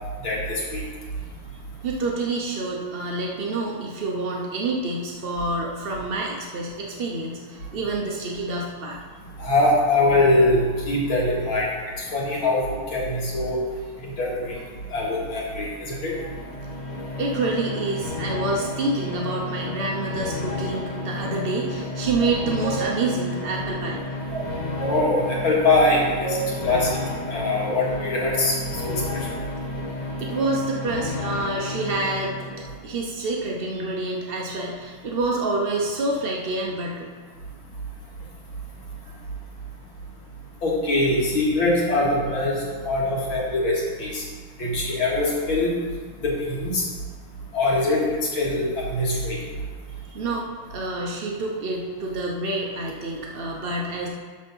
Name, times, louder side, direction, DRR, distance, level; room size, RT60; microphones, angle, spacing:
voice 1, 0.2-0.8 9.4-11.7 12.1-13.6 14.2-14.5 14.9-16.1 24.8-26.4 26.6-27.0 27.3-28.5 28.8-29.0 40.6-42.6 42.8-43.7 44.0-44.2 44.6-45.7 46.2-46.8 47.5-49.4, left 2 dB, 70° left, -4 dB, 2.8 m, -22 dB
voice 2, 1.8-9.0 17.0-24.0 30.2-32.4 32.8-37.1 39.1-39.2 50.1-54.1, right 2 dB, 65° right, -1 dB, 0.5 m, -27 dB
sound 1, 15.9-32.8, left 2 dB, 25° left, 1.1 m, -32 dB
sound 2, 22.2-22.8 24.3-25.0 25.8-26.4, right 6 dB, ahead, 2.6 m, -31 dB
12.5 x 4.3 x 5.5 m, 1.5 s
omnidirectional pair, 2.3 m